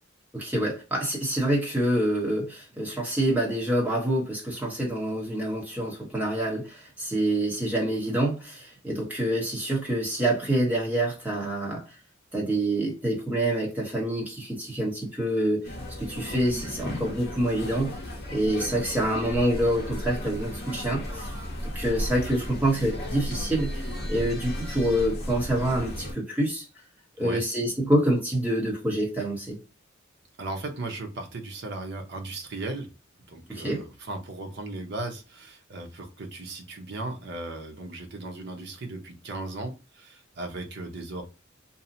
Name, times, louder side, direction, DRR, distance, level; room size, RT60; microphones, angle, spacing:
voice 1, 0.3-11.8 12.3-15.7 16.0-18.0 18.3-21.3 21.7-26.6 27.2-29.6 33.5-33.8, right 1 dB, 10° right, 0.9 m, -26 dB
sound 1, 15.6-26.1, left 1 dB, 50° left, 0.7 m, -35 dB
voice 2, 30.4-32.9 33.3-41.2, right 2 dB, 60° right, 0.7 m, -36 dB
2.7 x 2.1 x 2.6 m
head